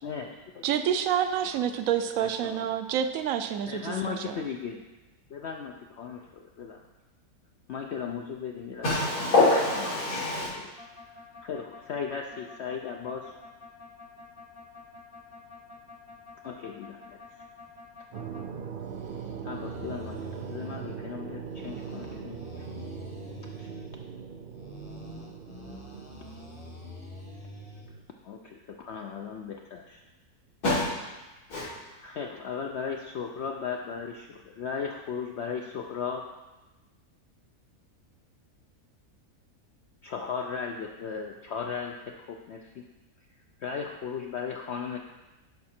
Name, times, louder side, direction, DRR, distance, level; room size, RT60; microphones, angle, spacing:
voice 1, 0.0-0.6 2.2-2.7 3.7-4.8 5.3-6.8 7.7-8.9 10.4-10.7 11.1-13.3 16.4-17.4 19.4-22.6 23.6-23.7 28.2-30.0 31.6-31.7 32.0-36.2 40.0-42.8 43.6-45.0, left 6 dB, 65° left, 2 dB, 0.7 m, -36 dB
voice 2, 0.6-4.4, right 9 dB, 70° right, 9 dB, 1.0 m, -28 dB
voice 3, 8.8-10.5 30.6-30.8 31.5-31.6, left 2 dB, 85° left, -14 dB, 3.5 m, -24 dB
sound 1, 10.8-18.4 18.8-21.0 21.4-24.0 24.5-27.9, left 2 dB, 25° left, 0.9 m, -47 dB
sound 2, 18.1-28.0, right 7 dB, 90° right, 0.4 m, -41 dB
11.0 x 4.8 x 4.3 m, 1.1 s
omnidirectional pair, 1.6 m